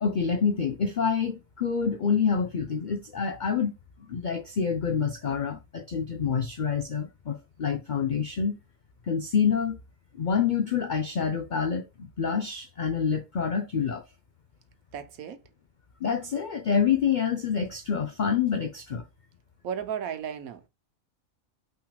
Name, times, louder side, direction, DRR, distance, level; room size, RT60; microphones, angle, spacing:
voice 1, 0.0-3.7 4.1-8.6 9.1-9.8 10.2-14.0 16.0-19.0, left 6 dB, 75° left, 0.4 m, -27 dB
voice 2, 14.9-15.4 19.6-20.7, right 8 dB, 80° right, 1.2 m, -34 dB
5.8 x 3.7 x 2.3 m
omnidirectional pair, 1.5 m